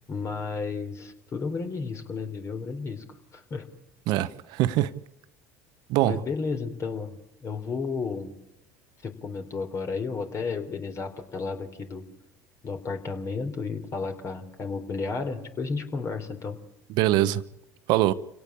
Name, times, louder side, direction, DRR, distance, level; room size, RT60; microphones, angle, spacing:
voice 1, 0.1-3.0 3.3-3.7 6.0-7.2 7.4-8.4 9.0-12.0 12.6-16.6, left 4 dB, 40° left, 3.9 m, -32 dB
voice 2, 4.1-4.9 5.9-6.2 16.9-17.4 17.9-18.1, right 15 dB, 65° right, 1.0 m, -23 dB
28.0 x 17.5 x 8.7 m
hypercardioid pair, 80°, 8 cm